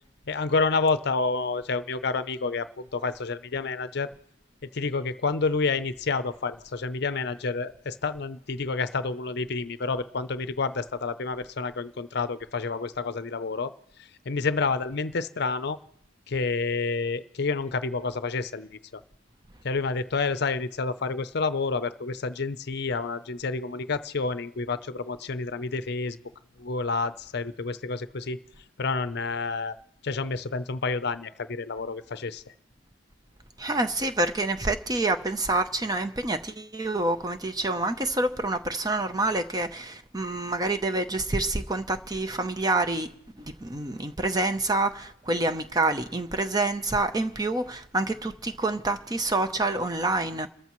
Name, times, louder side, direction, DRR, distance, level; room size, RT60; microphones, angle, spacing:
voice 1, 0.3-4.1 4.7-13.7 14.3-15.8 16.3-18.8 19.6-26.2 26.6-28.4 28.8-29.8 30.0-32.4, left 4 dB, 55° left, 0.6 m, -29 dB
voice 2, 33.6-43.1 43.3-50.5, right 2 dB, 20° right, 0.7 m, -27 dB
30.0 x 14.0 x 3.1 m
head